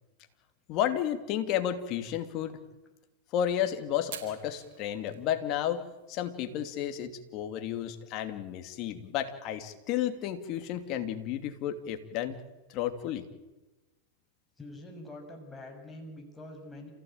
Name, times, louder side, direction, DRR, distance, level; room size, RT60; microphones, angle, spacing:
voice 1, 0.7-2.6 3.3-12.4 12.7-13.3, left 10 dB, 45° left, 8 dB, 2.7 m, -32 dB
Fire, 4.0-13.2, right 9 dB, 55° right, 4.8 m, -54 dB
voice 2, 14.6-16.9, left 1 dB, 10° left, 1 dB, 6.6 m, -45 dB
28.0 x 16.0 x 9.1 m, 1.1 s
hypercardioid pair, 110°, 0 cm